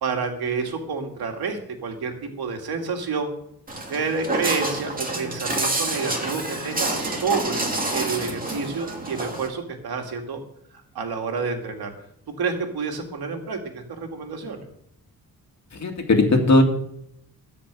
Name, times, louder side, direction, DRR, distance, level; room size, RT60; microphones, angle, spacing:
voice 1, 0.0-3.3 3.9-10.4 10.9-11.9 12.4-14.7, right 4 dB, 85° right, 4 dB, 2.3 m, -29 dB
Walk footsteps, 3.7-9.5, right 2 dB, 25° right, 2.4 m, -28 dB
voice 2, 15.7-16.6, left 2 dB, 50° left, 3 dB, 2.5 m, -18 dB
14.0 x 5.2 x 8.9 m, 0.73 s
wide cardioid pair, 115°, 36 cm